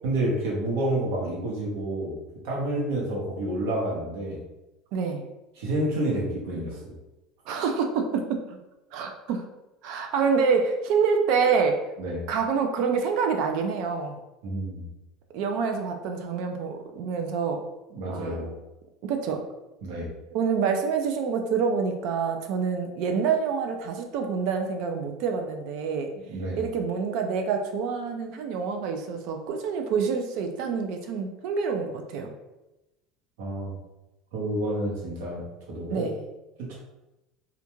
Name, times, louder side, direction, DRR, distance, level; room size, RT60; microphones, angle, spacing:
voice 1, 0.0-2.2 2.4-4.4 5.6-6.9 12.0-12.3 14.4-14.9 17.9-18.5 19.8-20.1 26.3-26.6 33.4-33.8 34.3-36.1 36.6-36.8, right 1 dB, 75° right, -3 dB, 0.9 m, -29 dB
voice 2, 4.9-5.3 7.5-8.2 8.5-8.6 8.9-9.4 9.8-11.8 12.3-14.2 15.3-17.6 18.1-18.5 19.0-19.4 20.3-26.1 26.6-32.3 35.9-36.2, right 5 dB, 55° right, 5 dB, 0.3 m, -27 dB
2.4 x 2.2 x 3.0 m, 0.99 s
cardioid pair, 175°, 0 cm